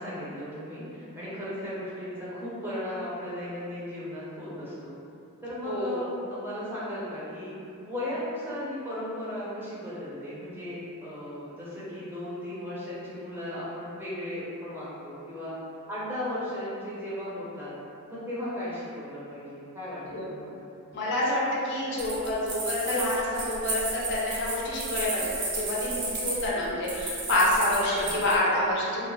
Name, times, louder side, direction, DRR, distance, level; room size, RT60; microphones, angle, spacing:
voice 1, 0.0-5.0 5.4-7.6 7.8-15.6 15.9-17.8 18.1-20.6 27.9-28.2, left 1 dB, 10° right, -10 dB, 0.5 m, -36 dB
voice 2, 5.6-6.0 20.1-20.3 20.9-29.1, left 1 dB, 55° left, -6 dB, 0.5 m, -27 dB
sound 1, 22.0-28.4, right 2 dB, 55° right, 0.5 m, -33 dB
2.2 x 2.1 x 3.0 m, 2.6 s
head